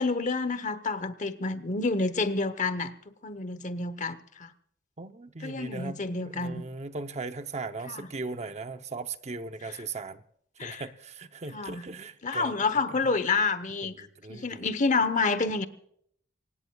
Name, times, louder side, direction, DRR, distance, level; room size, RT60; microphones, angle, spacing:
voice 1, 0.0-2.9 3.2-4.5 5.4-6.6 7.9-8.0 10.6-10.8 11.5-11.8 12.2-15.7, left 3 dB, 40° left, 1.0 m, -29 dB
voice 2, 5.0-10.2 10.6-13.1 13.8-14.7, right 3 dB, 35° right, 0.8 m, -39 dB
25.0 x 18.5 x 2.4 m
head